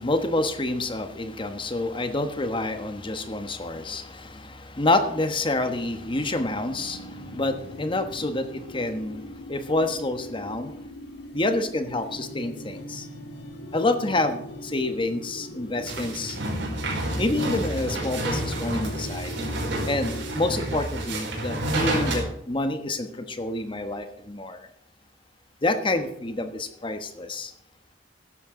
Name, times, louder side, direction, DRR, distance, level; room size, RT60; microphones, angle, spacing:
voice 1, 0.0-10.7 11.3-13.1 13.7-16.4 17.1-19.3 19.8-24.7 25.6-27.5, left 2 dB, 25° left, 8 dB, 1.2 m, -28 dB
sound 1, 5.5-20.3, equal, 65° left, 1.8 m, -41 dB
sound 2, 15.8-22.2, right 1 dB, 75° right, 4.8 m, -29 dB
14.0 x 11.0 x 3.8 m, 0.76 s
head